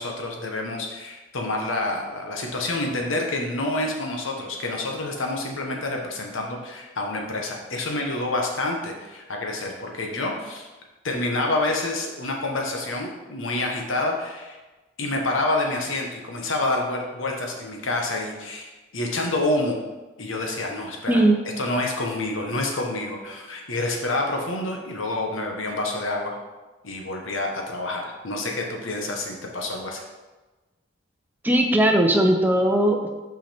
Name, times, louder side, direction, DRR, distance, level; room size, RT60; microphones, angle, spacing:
voice 1, 0.0-10.7 11.0-14.6 15.0-19.8 20.2-21.2 21.6-26.4 26.8-30.0, left 2 dB, 85° left, 1 dB, 1.2 m, -28 dB
voice 2, 21.1-21.4 31.4-33.1, right 1 dB, 10° right, 2 dB, 0.6 m, -19 dB
6.1 x 5.5 x 4.3 m, 1.2 s
head